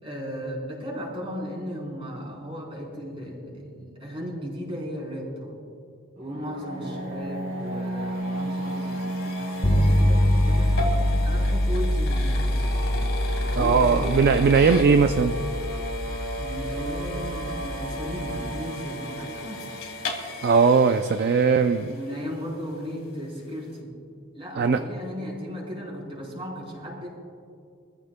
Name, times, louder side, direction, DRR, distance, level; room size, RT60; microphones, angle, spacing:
voice 1, 0.0-5.6 6.2-12.8 13.4-14.9 16.4-19.7 21.9-24.0 24.3-27.1, equal, 25° right, -3 dB, 4.1 m, -36 dB
sound 1, 6.2-22.0, right 1 dB, 90° right, 3.1 m, -35 dB
sound 2, 7.3-22.5, left 3 dB, 70° left, 2.0 m, -39 dB
sound 3, 9.6-18.6, left 1 dB, 35° left, 1.0 m, -25 dB
voice 2, 13.6-15.3 20.4-21.9 24.6-24.8, right 5 dB, 45° right, 8 dB, 0.4 m, -19 dB
25.0 x 15.0 x 2.2 m, 2.4 s
head